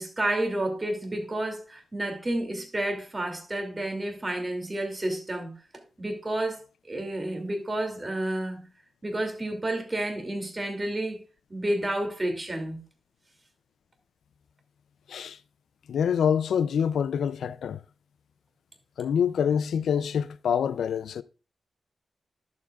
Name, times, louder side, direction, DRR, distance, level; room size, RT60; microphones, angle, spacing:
voice 1, 0.0-5.5 6.0-8.7 9.0-11.2 11.5-12.8, right 1 dB, 30° right, 2.6 m, -30 dB
voice 2, 15.9-17.8 19.0-21.2, left 7 dB, 90° left, 0.4 m, -26 dB
11.5 x 7.2 x 2.4 m
cardioid pair, 55°, 0 cm